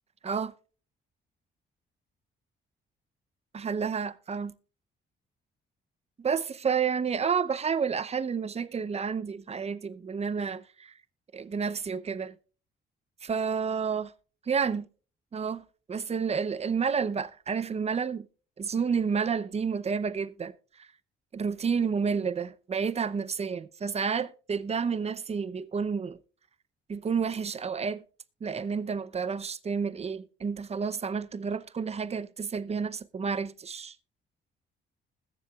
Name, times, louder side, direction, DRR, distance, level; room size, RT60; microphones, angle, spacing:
voice 1, 3.6-4.5 6.2-10.9 11.3-12.3 13.2-14.1 14.5-14.9 15.3-18.3 18.6-20.5 21.3-26.2 26.9-28.0 28.4-33.9, right 6 dB, 30° right, 0.7 m, -30 dB
20.5 x 7.3 x 2.4 m
cardioid pair, 90°, 20 cm